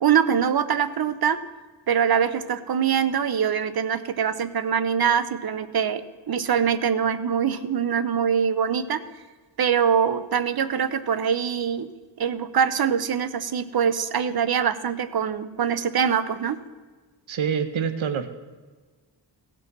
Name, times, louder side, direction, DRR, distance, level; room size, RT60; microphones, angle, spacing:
voice 1, 0.0-1.4 1.9-6.0 6.3-9.0 9.6-11.9 12.2-16.6, right 7 dB, 55° right, 13 dB, 0.7 m, -23 dB
voice 2, 17.3-18.3, right 7 dB, 90° right, 11 dB, 0.8 m, -26 dB
16.5 x 6.1 x 6.0 m, 1.4 s
wide cardioid pair, 110°, 46 cm